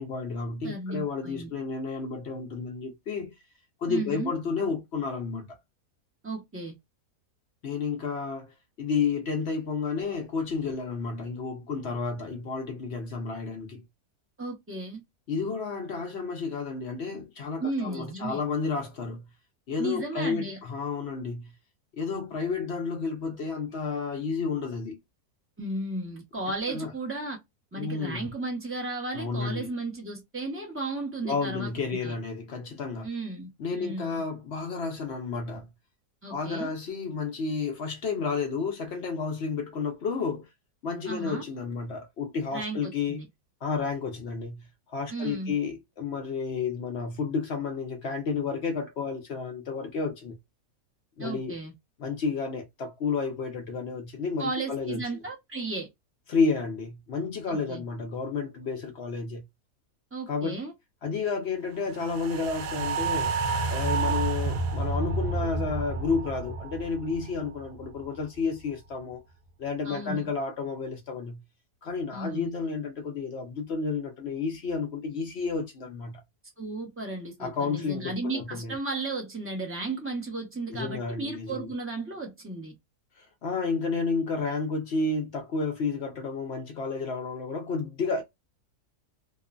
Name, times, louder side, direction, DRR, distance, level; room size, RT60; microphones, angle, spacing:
voice 1, 0.0-3.3 3.8-5.5 7.6-13.8 15.3-19.3 19.7-21.5 21.9-25.0 26.7-26.9 27.8-28.3 29.1-29.7 31.2-33.1 33.6-35.7 36.3-40.5 40.8-43.2 43.6-50.4 51.2-51.5 52.0-55.0 56.3-59.4 60.3-60.6 61.0-63.4 63.7-69.2 69.6-71.4 71.8-76.2 77.4-78.7 80.7-81.7 83.2-88.2, left 4 dB, 60° left, 0.7 m, -31 dB
voice 2, 0.6-1.5 3.9-4.3 6.2-6.7 14.4-15.0 17.6-18.4 19.8-20.6 25.6-27.4 27.7-31.7 32.0-32.1 33.0-34.2 36.2-36.7 41.0-41.4 42.5-43.3 45.1-45.5 51.2-51.7 54.4-55.9 57.5-57.8 60.1-60.7 69.8-70.3 72.1-72.5 76.6-82.7, right 2 dB, 15° right, 0.5 m, -34 dB
sound 1, 62.0-68.4 68.7-68.8, right 3 dB, 80° right, 1.2 m, -30 dB
3.0 x 2.0 x 2.4 m
omnidirectional pair, 1.7 m